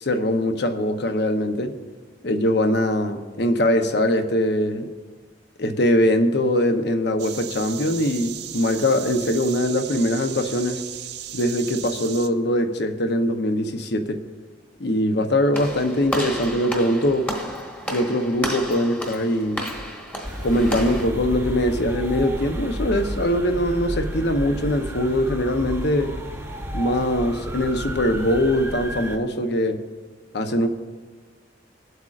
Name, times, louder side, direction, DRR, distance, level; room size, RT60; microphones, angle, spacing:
voice 1, 0.0-1.7 2.2-4.9 5.6-10.8 11.3-14.2 14.8-17.3 17.9-19.6 20.4-26.1 26.7-29.8 30.3-30.7, left 1 dB, 60° left, 6 dB, 0.9 m, -22 dB
sound 1, 7.2-12.3, right 10 dB, 60° right, 0.5 m, -36 dB
Walk footsteps / Slam, 15.5-21.1, equal, 10° left, 1.2 m, -32 dB
sound 2, 20.2-29.2, equal, 15° right, 0.9 m, -32 dB
21.5 x 8.0 x 2.5 m, 1.4 s
head